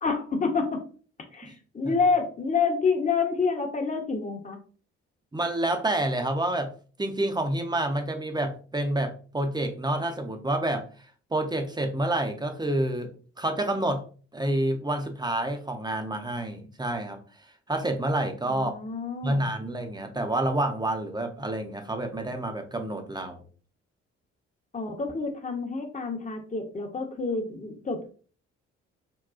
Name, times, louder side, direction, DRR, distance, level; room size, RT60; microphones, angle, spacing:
voice 1, 0.0-0.8 1.3-4.6 18.5-19.5 24.7-28.1, left 4 dB, 25° left, 4 dB, 0.9 m, -28 dB
voice 2, 5.3-6.7 7.0-10.8 11.3-13.1 13.4-14.0 14.3-17.2 17.7-18.7 19.2-23.4, right 1 dB, 15° right, 6 dB, 0.7 m, -28 dB
3.7 x 2.3 x 2.4 m, 0.40 s
hypercardioid pair, 45°, 33 cm